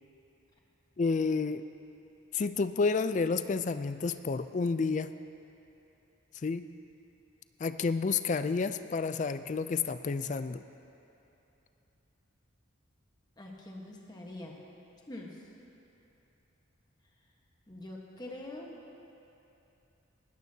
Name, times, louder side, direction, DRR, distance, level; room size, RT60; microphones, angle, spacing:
voice 1, 1.0-1.6 2.3-5.1 6.4-6.7 7.6-10.6, left 4 dB, 35° left, 12 dB, 0.3 m, -30 dB
voice 2, 13.4-14.5 15.1-15.5 17.7-18.8, left 1 dB, 20° left, -1 dB, 1.2 m, -44 dB
19.0 x 13.5 x 2.8 m, 2.9 s
head